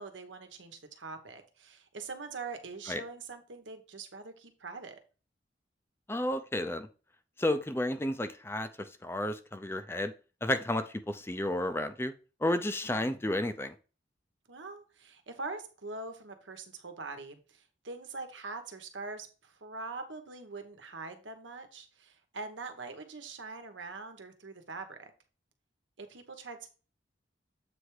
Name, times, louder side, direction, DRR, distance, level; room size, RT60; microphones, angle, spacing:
voice 1, 0.0-5.0 12.9-13.3 14.5-25.1 26.0-26.7, right 3 dB, 90° right, 7 dB, 1.2 m, -43 dB
voice 2, 6.1-6.9 7.4-8.7 9.0-10.1 10.4-12.1 12.4-13.7, left 1 dB, 15° left, 10 dB, 0.5 m, -31 dB
8.0 x 3.4 x 4.8 m, 0.35 s
head